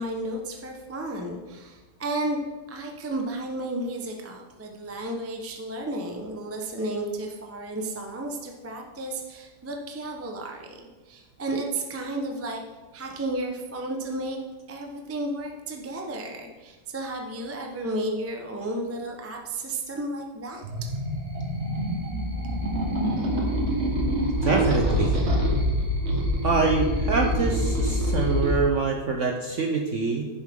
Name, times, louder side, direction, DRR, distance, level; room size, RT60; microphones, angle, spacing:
voice 1, 0.0-2.4 2.7-10.8 11.1-12.6 12.9-14.4 14.7-20.9, right 1 dB, 20° right, 2 dB, 0.4 m, -33 dB
sound 1, 20.6-28.5, equal, 40° right, 1.7 m, -25 dB
voice 2, 24.4-25.2 26.4-30.3, right 4 dB, 60° right, 2 dB, 0.8 m, -25 dB
9.9 x 7.2 x 3.6 m, 1.2 s
omnidirectional pair, 2.0 m